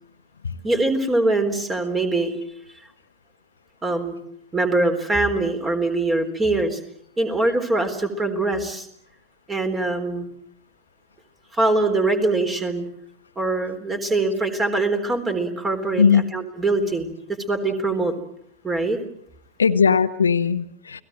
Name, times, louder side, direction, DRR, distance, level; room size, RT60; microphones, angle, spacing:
voice 1, 0.6-2.3 3.8-4.2 4.5-6.8 7.2-8.9 9.5-10.3 11.5-12.9 13.4-16.0 16.3-17.1 17.5-18.1 18.6-19.0, right 2 dB, 15° right, 8 dB, 3.9 m, -23 dB
voice 2, 16.0-16.3 19.6-21.0, left 6 dB, 70° left, 10 dB, 1.1 m, -19 dB
30.0 x 19.0 x 7.7 m, 0.72 s
figure-of-eight pair, 90°, 0 cm